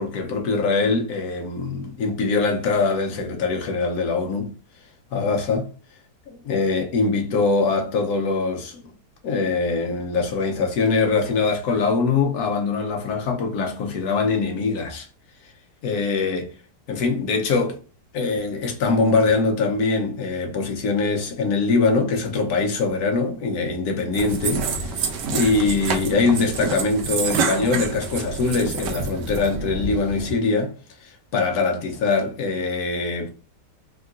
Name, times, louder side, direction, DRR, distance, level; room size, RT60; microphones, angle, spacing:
voice 1, 0.0-4.5 5.1-5.7 6.3-8.8 9.2-15.1 15.8-16.5 16.9-17.8 18.1-25.0 25.3-30.7 31.0-33.3, left 4 dB, 70° left, 1.2 m, -23 dB
sound 1, 24.1-30.3, right 4 dB, 80° right, 1.3 m, -27 dB
3.7 x 2.3 x 2.5 m
omnidirectional pair, 1.9 m